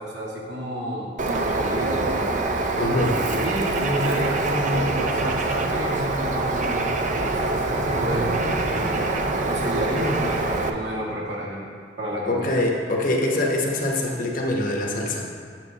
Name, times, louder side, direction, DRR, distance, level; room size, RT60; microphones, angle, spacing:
voice 1, 0.0-2.3 3.4-9.1 9.4-11.6 12.0-12.5, equal, 70° right, -5 dB, 1.7 m, -30 dB
Bird, 1.2-10.7, right 2 dB, 45° right, 0.5 m, -25 dB
voice 2, 2.8-3.2 12.2-15.3, left 1 dB, 50° left, -1 dB, 1.0 m, -24 dB
8.9 x 7.3 x 2.9 m, 2.1 s
head